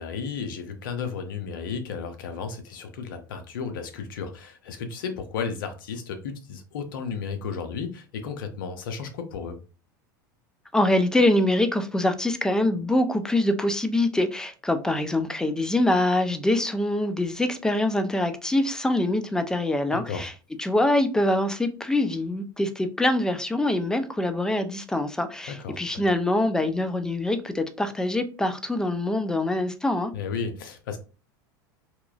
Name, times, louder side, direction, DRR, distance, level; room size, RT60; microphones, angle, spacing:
voice 1, 0.0-9.6 19.9-20.3 25.6-26.0 30.1-31.0, left 5 dB, 75° left, 0.6 m, -33 dB
voice 2, 10.7-20.3 20.6-30.1, left 1 dB, 5° left, 0.4 m, -24 dB
2.9 x 2.4 x 2.3 m
hypercardioid pair, 95°, 11 cm